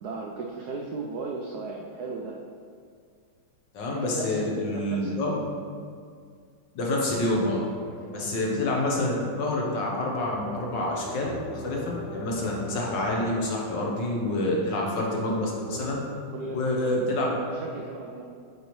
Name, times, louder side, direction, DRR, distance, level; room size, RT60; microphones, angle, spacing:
voice 1, 0.0-2.4 3.9-5.5 8.0-8.3 16.3-16.9 17.4-18.2, right 3 dB, 80° right, -1 dB, 0.8 m, -36 dB
voice 2, 3.7-5.4 6.7-7.6 8.1-16.0 16.5-17.4, left 1 dB, 60° left, -2 dB, 1.5 m, -27 dB
sound 1, 7.7-9.4 10.1-16.0, left 2 dB, 80° left, 1.8 m, -43 dB
8.1 x 4.7 x 3.1 m, 2.2 s
omnidirectional pair, 2.3 m